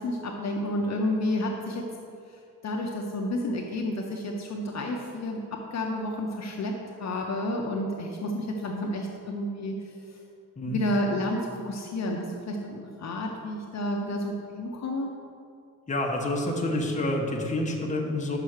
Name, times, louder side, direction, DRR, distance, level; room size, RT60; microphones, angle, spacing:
voice 1, 0.0-1.8 2.3-6.7 7.0-10.2 10.7-15.1, left 1 dB, 50° left, 0 dB, 0.6 m, -30 dB
voice 2, 15.9-18.4, left 1 dB, 20° left, -1 dB, 0.9 m, -28 dB
5.8 x 5.6 x 6.4 m, 2.5 s
wide cardioid pair, 165°, 36 cm